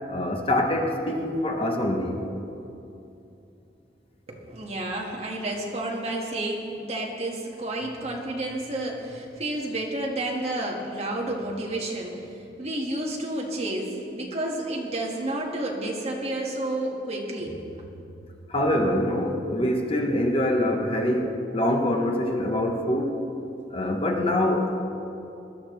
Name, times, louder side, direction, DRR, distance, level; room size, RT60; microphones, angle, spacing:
voice 1, 0.1-2.2 18.5-23.2 23.7-24.8, left 1 dB, 30° left, 2 dB, 1.0 m, -24 dB
voice 2, 4.3-17.9, right 1 dB, 35° right, -2 dB, 1.9 m, -31 dB
21.0 x 13.0 x 3.3 m, 2.8 s
head